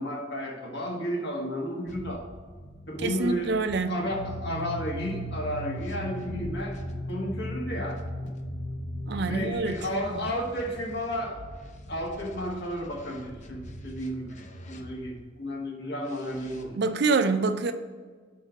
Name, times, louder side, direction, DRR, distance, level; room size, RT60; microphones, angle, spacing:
voice 1, 0.0-2.2 2.9-3.6 3.9-6.8 7.1-8.0 9.3-11.4 11.9-16.9, equal, 60° left, 1.4 m, -32 dB
sound 1, 1.9-6.9 7.9-15.2 16.0-16.6, equal, 40° left, 0.6 m, -46 dB
voice 2, 3.0-4.0 9.1-9.7 16.8-17.7, right 3 dB, 60° right, 0.4 m, -26 dB
sound 2, 4.1-9.4, equal, 90° left, 1.1 m, -36 dB
4.9 x 4.3 x 6.0 m
head